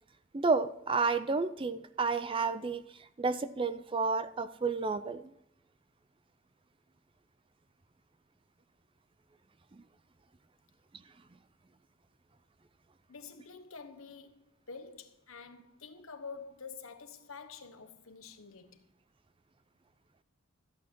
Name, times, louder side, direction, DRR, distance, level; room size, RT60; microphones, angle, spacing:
voice 1, 0.3-2.8 3.2-5.3, right 4 dB, 25° right, 0.4 m, -31 dB
voice 2, 13.1-18.8, left 5 dB, 75° left, 1.2 m, -48 dB
13.5 x 8.5 x 4.5 m
head